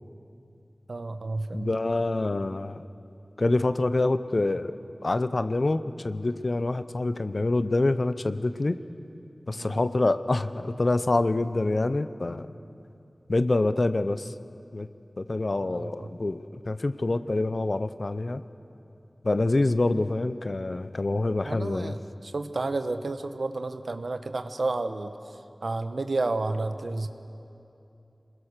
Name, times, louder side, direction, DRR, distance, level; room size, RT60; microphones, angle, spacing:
voice 1, 0.9-1.7 9.6-9.8 15.6-16.1 21.4-25.1 25.6-27.1, right 3 dB, 85° right, 9 dB, 1.0 m, -31 dB
voice 2, 1.5-2.8 3.4-8.8 9.5-12.5 13.3-14.3 14.7-14.9 15.2-18.4 19.2-21.9, left 2 dB, 60° left, 12 dB, 0.8 m, -26 dB
27.5 x 21.5 x 6.7 m, 2.7 s
wide cardioid pair, 45°, 0 cm